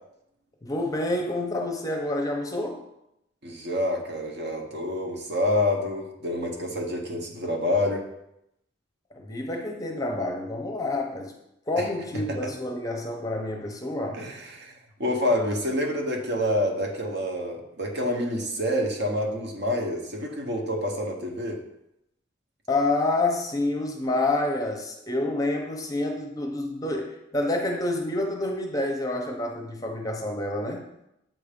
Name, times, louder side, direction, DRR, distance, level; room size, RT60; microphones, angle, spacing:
voice 1, 0.6-2.8 9.1-11.3 11.7-14.2 22.7-30.9, left 2 dB, 20° left, 2 dB, 0.7 m, -28 dB
voice 2, 3.4-8.1 11.8-11.9 12.4-12.5 14.1-14.7 15.0-21.6, left 1 dB, 55° right, 1 dB, 0.9 m, -27 dB
7.6 x 2.6 x 5.0 m, 0.84 s
head